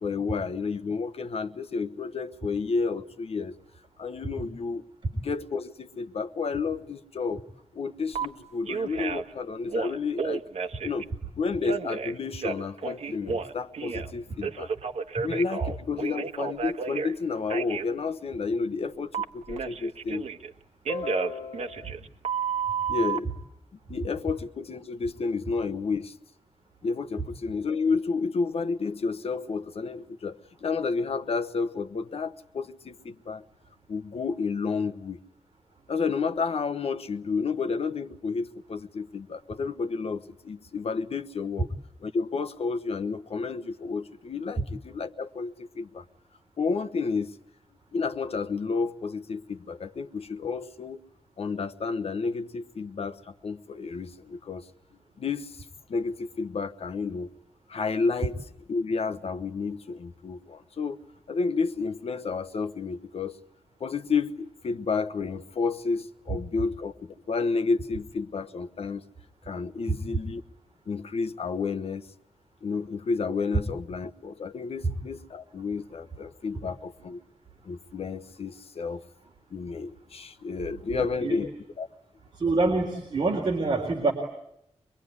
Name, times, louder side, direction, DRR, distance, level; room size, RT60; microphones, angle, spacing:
voice 1, 0.0-3.5 4.0-4.8 5.2-7.4 7.7-10.4 10.8-11.1 11.4-14.7 15.2-20.3 20.9-21.9 22.9-23.3 23.9-26.2 26.8-33.4 33.9-35.2 35.9-41.7 42.0-46.0 46.6-47.4 47.9-51.0 51.4-54.7 55.2-57.3 57.7-58.4 58.7-61.0 61.3-63.4 63.8-69.0 69.4-70.4 70.9-72.0 72.6-77.2 77.6-79.0 79.5-81.5 81.8-81.9, left 4 dB, 65° left, 1.1 m, -31 dB
Telephone, 8.1-8.3 8.7-9.3 9.7-11.0 11.6-14.1 14.4-17.1 17.5-17.9 19.1-20.5 20.9-23.2, right 5 dB, 80° right, 1.3 m, -31 dB
voice 2, 80.9-81.4 82.3-84.1, right 3 dB, 45° right, 3.6 m, -26 dB
25.0 x 22.5 x 9.7 m
wide cardioid pair, 170°, 11 cm